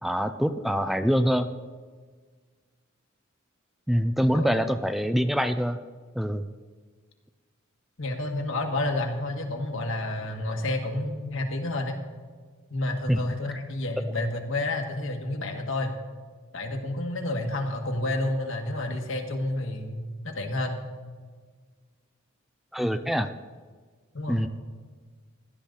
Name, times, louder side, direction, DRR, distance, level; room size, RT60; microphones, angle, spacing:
voice 1, 0.0-1.5 3.9-5.8 6.2-6.5 13.1-13.6 22.7-23.3 24.3-24.5, equal, ahead, 9 dB, 0.4 m, -25 dB
voice 2, 8.0-12.0 12.7-15.9 16.5-20.8 24.1-24.5, left 2 dB, 70° left, 3 dB, 1.7 m, -30 dB
16.5 x 12.0 x 3.9 m, 1.5 s
head